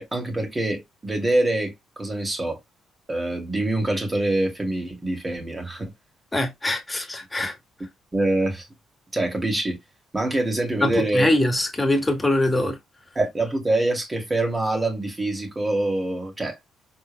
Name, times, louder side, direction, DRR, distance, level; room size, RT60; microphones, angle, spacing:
voice 1, 0.0-2.6 3.1-5.9 8.1-8.7 9.1-9.8 10.1-11.3 13.1-16.6, right 2 dB, 20° right, 2.6 m, -25 dB
voice 2, 6.3-7.6 10.8-12.8, left 1 dB, 15° left, 2.0 m, -23 dB
5.4 x 4.4 x 2.2 m
cardioid pair, 90°, 0 cm